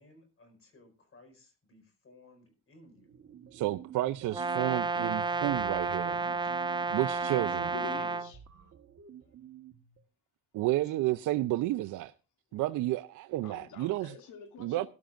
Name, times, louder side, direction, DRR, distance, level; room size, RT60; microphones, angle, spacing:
voice 1, 0.0-3.1 10.8-10.9, left 2 dB, 45° left, 4.7 m, -59 dB
sound 1, 2.9-10.0, right 9 dB, 55° right, 1.4 m, -50 dB
voice 2, 3.5-6.2 6.9-7.7 10.5-12.1 12.5-14.1 14.6-14.9, right 16 dB, 80° right, 0.5 m, -31 dB
Brass instrument, 4.3-8.3, right 4 dB, 15° right, 0.6 m, -31 dB
voice 3, 6.4-6.8 7.7-8.4 12.5-12.6 13.4-14.9, left 7 dB, 80° left, 2.5 m, -46 dB
18.0 x 11.5 x 2.5 m
cardioid pair, 90°, 30 cm